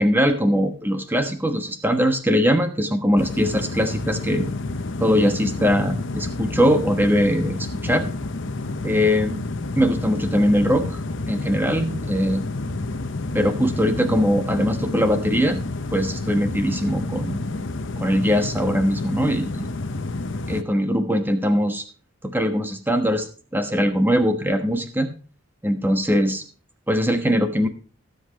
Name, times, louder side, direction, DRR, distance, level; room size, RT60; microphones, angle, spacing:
voice 1, 0.0-4.5 5.0-8.1 8.8-9.4 9.8-11.0 11.3-12.4 13.3-15.6 15.9-17.4 18.0-19.7 20.5-21.8 22.2-23.3 23.5-25.1 25.6-26.4 26.9-27.7, equal, 10° right, 7 dB, 1.2 m, -21 dB
sound 1, 3.2-20.6, left 2 dB, 55° left, 0.8 m, -29 dB
18.0 x 8.0 x 2.9 m, 0.39 s
head